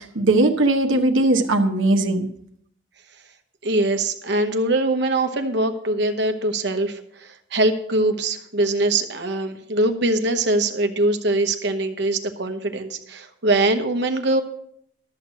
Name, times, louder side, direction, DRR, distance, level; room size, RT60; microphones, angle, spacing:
voice 1, 0.0-2.3, right 2 dB, 85° right, 5 dB, 1.1 m, -19 dB
voice 2, 3.6-14.4, right 2 dB, 60° right, 7 dB, 1.1 m, -22 dB
12.5 x 6.5 x 6.4 m, 0.69 s
head